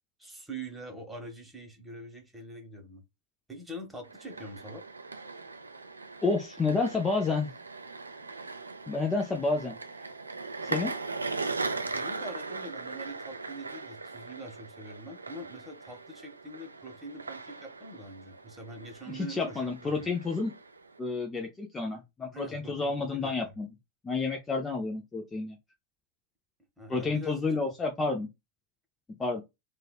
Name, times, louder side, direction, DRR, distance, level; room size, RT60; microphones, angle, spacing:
voice 1, 0.2-3.0 3.5-4.8 11.9-20.1 22.3-23.5 26.8-27.4, right 1 dB, 10° right, 1.0 m, -44 dB
sound 1, 4.0-21.0, right 3 dB, 80° right, 0.3 m, -39 dB
voice 2, 6.2-7.5 8.9-9.8 10.6-10.9 19.1-20.5 21.0-23.7 24.0-25.6 26.9-28.3 29.2-29.4, left 3 dB, 15° left, 0.4 m, -30 dB
3.2 x 2.3 x 2.3 m
figure-of-eight pair, 90°, 0 cm